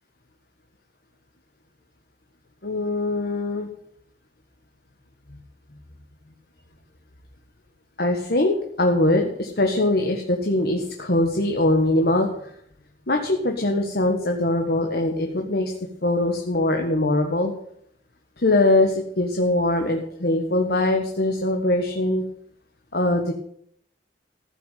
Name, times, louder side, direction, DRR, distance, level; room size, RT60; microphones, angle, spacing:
voice 1, 2.6-3.7 8.0-12.5 13.1-15.7 16.0-17.5 18.4-22.2 22.9-23.3, left 1 dB, 55° left, 3 dB, 1.5 m, -22 dB
15.0 x 6.4 x 9.2 m, 0.70 s
head